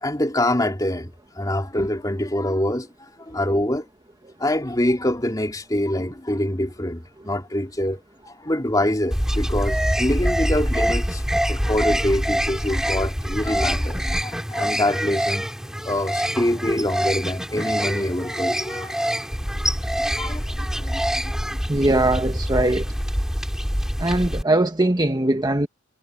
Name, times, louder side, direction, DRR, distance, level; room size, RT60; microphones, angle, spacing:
voice 1, 0.0-3.9 4.4-11.2 11.5-15.5 15.8-19.1 19.9-21.3, left 1 dB, 20° left, 3.0 m, -25 dB
sound 1, 9.1-24.4, equal, 5° right, 3.1 m, -25 dB
voice 2, 21.7-22.9 24.0-25.7, right 1 dB, 20° right, 1.1 m, -21 dB
head